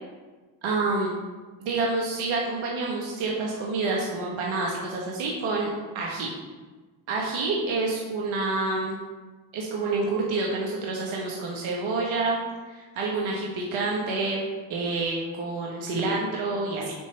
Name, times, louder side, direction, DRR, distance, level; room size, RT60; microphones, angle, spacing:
voice 1, 0.6-1.2 1.6-5.7 5.9-6.3 7.1-9.0 9.5-12.4 12.7-14.4 14.7-16.9, right 3 dB, 70° right, -3 dB, 1.3 m, -28 dB
9.1 x 3.2 x 4.4 m, 1.3 s
supercardioid pair, 60°, 50 cm